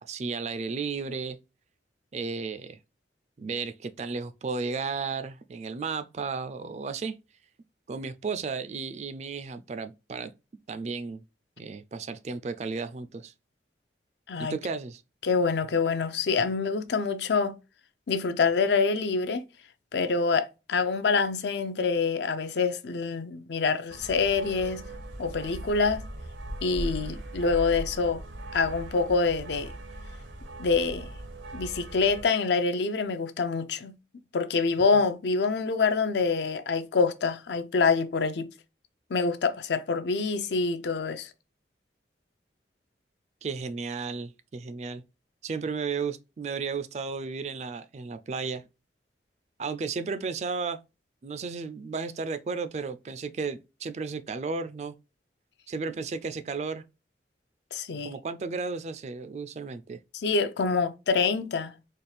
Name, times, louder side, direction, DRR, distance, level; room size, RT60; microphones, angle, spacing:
voice 1, 0.0-1.4 2.1-2.8 3.4-7.1 7.9-10.3 10.7-11.2 11.6-13.3 14.4-15.0 43.4-45.0 45.4-48.6 49.6-50.8 51.2-54.9 55.7-56.8 58.0-60.0, right 4 dB, 35° right, 0.3 m, -34 dB
voice 2, 15.2-17.5 18.1-19.4 19.9-24.8 25.2-26.0 26.6-28.2 28.5-29.7 30.6-31.1 31.5-33.9 34.3-38.5 39.1-41.3 57.7-58.1 60.1-61.7, left 4 dB, 70° left, 0.5 m, -26 dB
sound 1, 23.9-32.3, right 1 dB, 85° right, 0.8 m, -39 dB
4.1 x 2.3 x 3.3 m
head